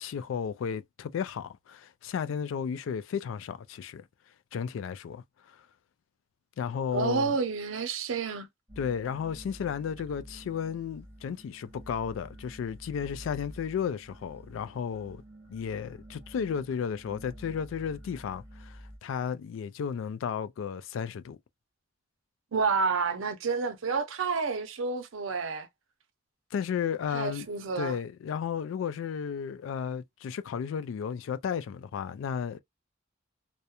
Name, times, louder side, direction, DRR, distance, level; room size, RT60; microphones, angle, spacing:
voice 1, 0.0-4.0 4.5-5.6 6.6-7.4 8.8-15.2 15.5-21.4 26.5-27.5 27.8-32.6, left 7 dB, 80° left, 0.3 m, -33 dB
voice 2, 6.9-8.5 22.5-25.7 27.1-28.0, right 5 dB, 85° right, 0.5 m, -29 dB
sound 1, 8.7-19.0, equal, 15° right, 0.7 m, -49 dB
2.3 x 2.1 x 2.8 m
head